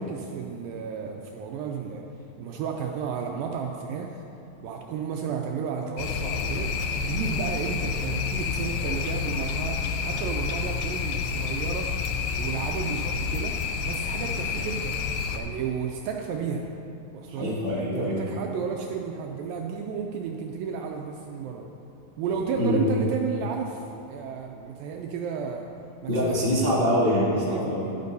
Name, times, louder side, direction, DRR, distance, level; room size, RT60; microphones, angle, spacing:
voice 1, 0.0-2.0 2.4-4.2 4.6-6.7 7.0-11.9 12.4-13.6 13.8-15.0 15.3-16.7 17.1-17.6 17.9-21.7 22.2-25.7 26.0-26.6 27.4-28.0, right 6 dB, 80° right, 2 dB, 2.1 m, -33 dB
sound 1, 6.0-15.4, left 5 dB, 90° left, 1.9 m, -29 dB
voice 2, 17.3-18.3 22.5-22.8 26.1-28.0, equal, 30° left, -9 dB, 0.8 m, -24 dB
11.5 x 11.5 x 2.7 m, 2.9 s
omnidirectional pair, 4.4 m